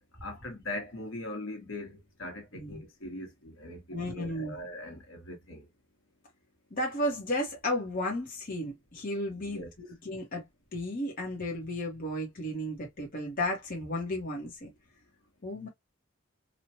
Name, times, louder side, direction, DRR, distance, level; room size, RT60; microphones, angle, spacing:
voice 1, 0.2-5.7 9.4-9.7, left 1 dB, 75° left, 1.3 m, -41 dB
voice 2, 3.9-4.5 6.7-10.5 10.7-14.7 15.4-15.7, left 1 dB, 45° left, 1.1 m, -34 dB
3.1 x 2.4 x 2.7 m
head